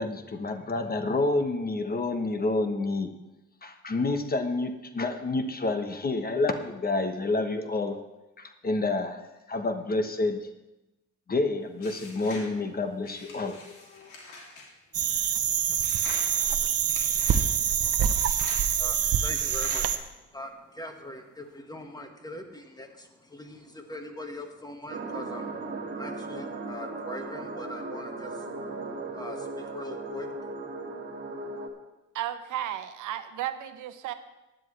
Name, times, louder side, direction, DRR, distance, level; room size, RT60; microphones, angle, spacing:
voice 1, 0.0-3.1 3.6-8.0 8.4-9.2 9.5-10.5 11.3-14.1, left 2 dB, 30° left, 8 dB, 1.0 m, -29 dB
sound 1, 11.8-12.5 13.0-14.7 15.8-16.3 16.9-17.4 18.1-18.6 19.3-19.9, left 3 dB, 85° left, 2.9 m, -44 dB
sound 2, 14.9-20.0, right 9 dB, 50° right, 0.8 m, -25 dB
voice 2, 18.7-20.0 20.3-28.7 29.1-30.6, left 1 dB, 15° left, 4 dB, 1.6 m, -42 dB
sound 3, 24.9-31.7, right 3 dB, 35° right, 1.9 m, -37 dB
voice 3, 32.1-34.1, right 12 dB, 80° right, 10 dB, 0.8 m, -34 dB
15.5 x 10.0 x 3.3 m, 1.0 s
cardioid pair, 90°, 30 cm